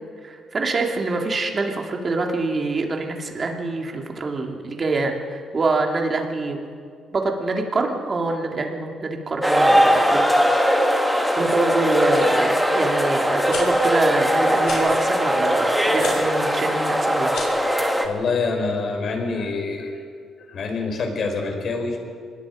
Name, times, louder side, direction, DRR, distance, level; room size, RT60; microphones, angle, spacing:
voice 1, 0.2-6.6 7.1-10.2 11.4-17.4, right 3 dB, 40° right, 2 dB, 3.1 m, -25 dB
sound 1, 9.4-18.1, equal, 5° right, 2.2 m, -20 dB
sound 2, 13.5-13.6 14.6-14.8 16.0-16.2 17.2-17.6, left 5 dB, 70° left, 5.9 m, -33 dB
voice 2, 18.0-20.0 20.5-22.0, left 4 dB, 55° left, 3 dB, 4.5 m, -26 dB
25.5 x 20.5 x 5.3 m, 2.1 s
cardioid pair, 90°, 0 cm